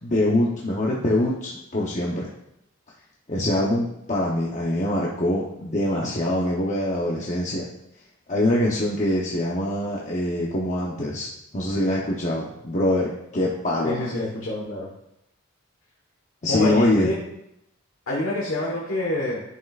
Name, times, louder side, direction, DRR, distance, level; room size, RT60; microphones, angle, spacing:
voice 1, 0.0-2.3 3.3-7.6 8.3-14.2 16.4-17.1, left 1 dB, 35° left, -3 dB, 0.9 m, -24 dB
voice 2, 13.8-14.9 16.5-17.2 18.1-19.4, left 2 dB, 80° left, -4 dB, 1.4 m, -27 dB
11.0 x 5.6 x 2.5 m, 0.82 s
head